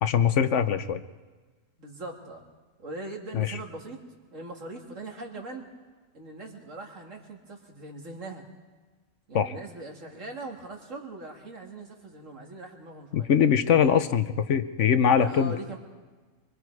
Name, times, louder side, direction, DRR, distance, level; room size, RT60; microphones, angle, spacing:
voice 1, 0.0-1.0 3.3-3.6 9.3-9.5 13.1-15.5, left 7 dB, 70° left, 11 dB, 1.1 m, -22 dB
voice 2, 1.8-2.4 2.8-4.0 4.3-5.7 6.1-8.4 9.3-13.3 15.1-15.8, right 2 dB, 75° right, 1 dB, 2.9 m, -40 dB
24.5 x 23.5 x 4.8 m, 1.3 s
omnidirectional pair, 1.3 m